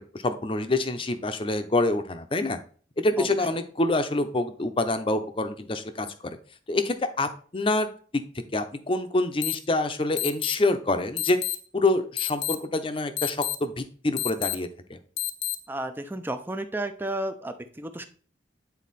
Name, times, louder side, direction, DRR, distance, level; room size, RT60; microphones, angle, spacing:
voice 1, 0.2-2.6 3.0-6.4 6.7-7.9 8.5-11.4 11.7-15.0, left 2 dB, 30° left, 9 dB, 0.7 m, -26 dB
sound 1, 9.4-9.5 10.2-10.5 11.2-11.5 12.2-12.5 13.2-13.5 14.2-14.5 15.2-15.5, left 13 dB, 85° left, 0.9 m, -28 dB
voice 2, 15.7-18.1, right 1 dB, 10° right, 9 dB, 0.5 m, -32 dB
9.4 x 4.1 x 4.2 m, 0.42 s
head